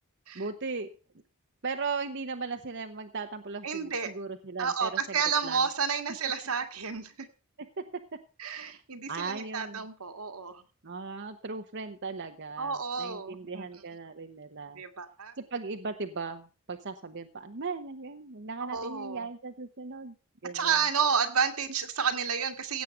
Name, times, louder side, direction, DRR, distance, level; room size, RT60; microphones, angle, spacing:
voice 1, 0.3-0.9 1.6-5.6 8.5-8.8 9.1-9.8 10.8-14.8 15.4-20.1 20.4-20.8, right 4 dB, 50° right, 6 dB, 0.9 m, -37 dB
voice 2, 3.6-4.1 4.6-7.3 8.4-10.6 12.6-13.7 14.7-15.3 18.6-19.3 20.5-22.8, right 6 dB, 80° right, 6 dB, 1.9 m, -30 dB
16.5 x 8.4 x 4.9 m, 0.35 s
head